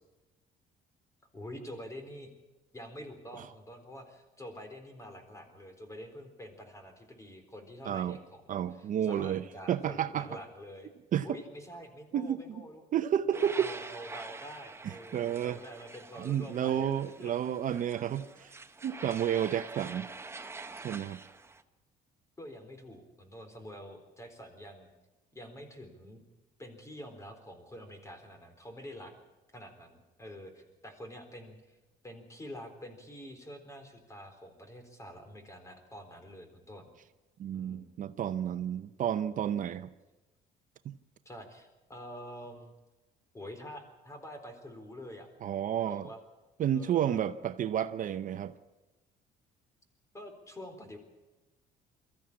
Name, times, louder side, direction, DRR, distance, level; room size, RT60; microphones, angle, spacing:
voice 1, 1.3-2.3 2.7-10.9 11.2-12.8 13.3-16.9 17.2-17.3 22.4-24.9 25.3-26.2 26.6-29.1 29.5-31.8 32.0-36.9 37.5-37.9 41.3-42.7 43.3-45.3 45.8-46.2 46.7-47.3 50.1-51.0, equal, 20° left, 7 dB, 4.0 m, -47 dB
voice 2, 7.9-8.2 8.5-10.3 11.1-11.3 12.1-12.6 12.9-13.7 14.8-15.6 16.2-18.5 18.8-20.1 20.8-21.2 37.4-39.9 40.8-41.0 45.4-46.1 46.6-48.5, right 10 dB, 50° right, 11 dB, 0.7 m, -31 dB
sound 1, 13.3-21.6, right 3 dB, 15° right, 1.0 m, -46 dB
22.5 x 14.0 x 8.6 m, 1.1 s
cardioid pair, 110°, 17 cm